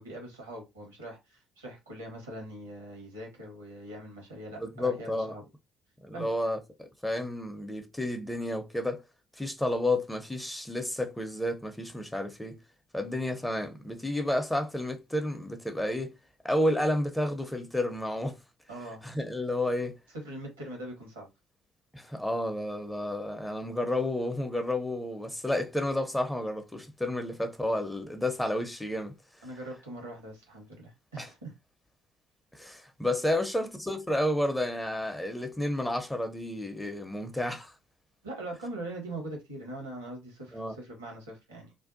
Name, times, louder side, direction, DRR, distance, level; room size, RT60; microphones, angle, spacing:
voice 1, 0.0-5.4 6.1-6.3 18.7-19.0 20.1-21.3 29.4-31.5 33.3-33.4 38.2-41.7, right 1 dB, 85° right, 1.0 m, -42 dB
voice 2, 4.6-5.3 6.0-9.0 9.4-12.6 12.9-16.1 16.4-18.4 19.0-20.0 21.9-29.1 31.2-31.3 32.5-37.7 40.5-40.7, left 1 dB, 5° left, 0.6 m, -31 dB
2.6 x 2.2 x 2.5 m
figure-of-eight pair, 50°, 0 cm